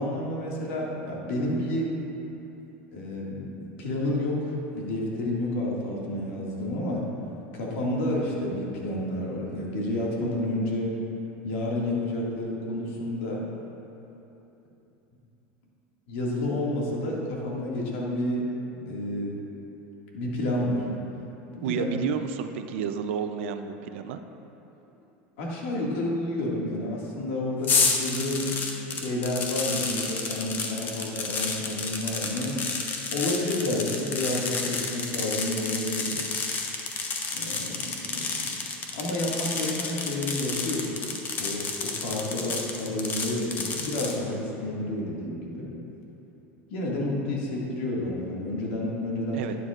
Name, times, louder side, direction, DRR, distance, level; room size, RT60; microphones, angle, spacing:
voice 1, 0.0-2.0 2.9-7.0 7.5-10.9 11.4-13.5 16.1-19.4 20.1-20.9 21.5-21.8 25.4-28.6 28.9-32.6 33.1-36.2 37.3-38.5 38.9-41.0 41.4-45.7 46.7-49.4, left 1 dB, 75° left, -4 dB, 2.0 m, -30 dB
voice 2, 21.6-24.2 49.3-49.6, right 7 dB, 80° right, 8 dB, 0.5 m, -31 dB
sound 1, 27.6-44.2, left 4 dB, 30° left, 0.9 m, -30 dB
11.5 x 9.4 x 2.5 m, 3.0 s
supercardioid pair, 135°, 7 cm